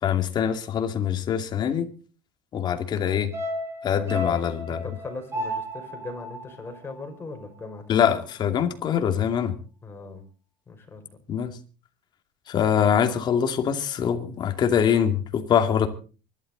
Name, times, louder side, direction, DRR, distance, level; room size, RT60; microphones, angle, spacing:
voice 1, 0.0-1.9 2.5-3.3 3.8-4.8 7.9-9.5 11.3-11.6 12.5-15.9, left 8 dB, 40° left, 6 dB, 2.6 m, -23 dB
sound 1, 3.3-7.7 8.0-8.1, equal, 20° right, 5.9 m, -34 dB
voice 2, 4.2-8.0 9.8-10.2 10.7-11.2, left 3 dB, 20° left, 4 dB, 5.5 m, -39 dB
24.5 x 12.0 x 4.0 m, 0.37 s
supercardioid pair, 115°, 12 cm